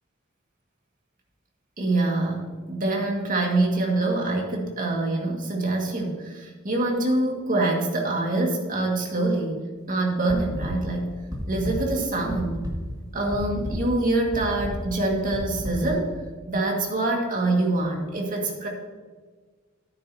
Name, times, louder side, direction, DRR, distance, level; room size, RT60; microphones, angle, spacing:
voice 1, 1.8-11.1 11.5-12.6 13.1-16.2 16.5-18.7, right 2 dB, 40° right, 0 dB, 2.0 m, -25 dB
sound 1, 10.3-10.7 11.3-11.7 12.1-12.7 13.3-13.7 14.3-14.7 15.3-15.7, equal, 20° right, 2.0 m, -32 dB
10.5 x 9.1 x 2.8 m, 1.5 s
head